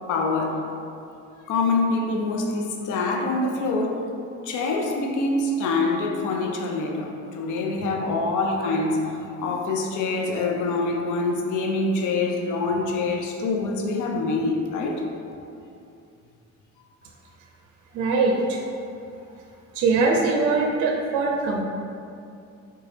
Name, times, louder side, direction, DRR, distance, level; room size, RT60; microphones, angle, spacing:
voice 1, 0.1-0.6 1.5-4.0 4.4-15.0, left 3 dB, 85° left, 1 dB, 0.5 m, -25 dB
voice 2, 17.9-18.6 19.7-21.6, right 3 dB, 75° right, 0 dB, 0.4 m, -22 dB
3.8 x 2.2 x 3.2 m, 2.5 s
cardioid pair, 90°, 30 cm